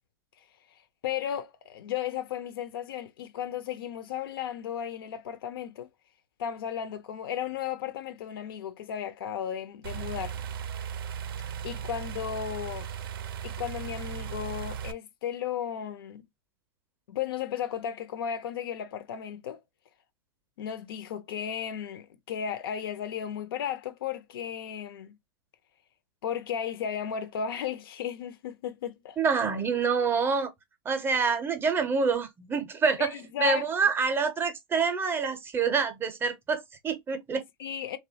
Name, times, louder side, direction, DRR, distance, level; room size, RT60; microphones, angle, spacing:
voice 1, 1.0-5.9 6.4-10.4 11.6-12.9 13.4-16.3 17.1-19.6 20.6-25.2 26.2-29.2 33.0-33.7 37.6-38.0, left 9 dB, 75° left, 0.5 m, -34 dB
sound 1, 9.8-14.9, right 8 dB, 75° right, 0.4 m, -37 dB
voice 2, 29.2-30.5 30.8-37.4, right 5 dB, 20° right, 0.5 m, -27 dB
2.9 x 2.1 x 2.6 m
hypercardioid pair, 125°, 12 cm